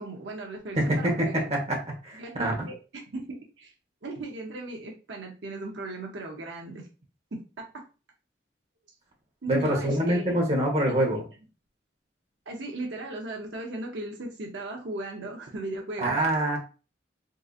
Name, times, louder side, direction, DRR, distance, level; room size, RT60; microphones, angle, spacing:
voice 1, 0.0-1.5 2.1-3.7 4.0-6.9 7.3-7.4 7.7-7.8 9.4-11.0 12.5-16.2, right 2 dB, 75° right, 0 dB, 0.7 m, -37 dB
voice 2, 0.8-2.5 9.5-11.2 16.0-16.6, right 1 dB, 35° right, 0 dB, 1.1 m, -25 dB
3.8 x 2.7 x 2.4 m, 0.32 s
head